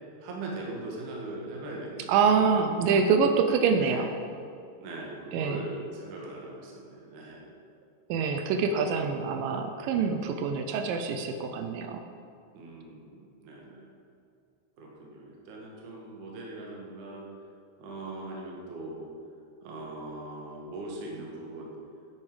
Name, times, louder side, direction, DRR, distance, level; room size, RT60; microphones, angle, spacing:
voice 1, 0.2-2.2 3.8-4.1 4.8-7.5 12.5-13.9 14.8-17.3 17.8-19.1 19.6-21.7, right 2 dB, 55° right, -2 dB, 2.8 m, -40 dB
voice 2, 2.1-4.1 5.3-5.6 8.1-12.0, right 5 dB, 85° right, 6 dB, 2.0 m, -25 dB
9.8 x 9.8 x 4.9 m, 2.4 s
omnidirectional pair, 4.8 m